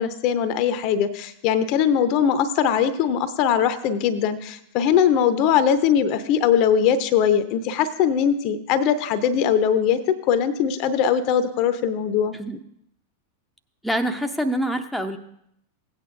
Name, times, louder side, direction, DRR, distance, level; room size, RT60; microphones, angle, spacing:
voice 1, 0.0-12.3, left 8 dB, 40° left, 13 dB, 0.7 m, -21 dB
voice 2, 13.8-15.2, equal, ahead, 4 dB, 0.7 m, -25 dB
16.5 x 8.8 x 2.6 m, 0.73 s
figure-of-eight pair, 90°, 0 cm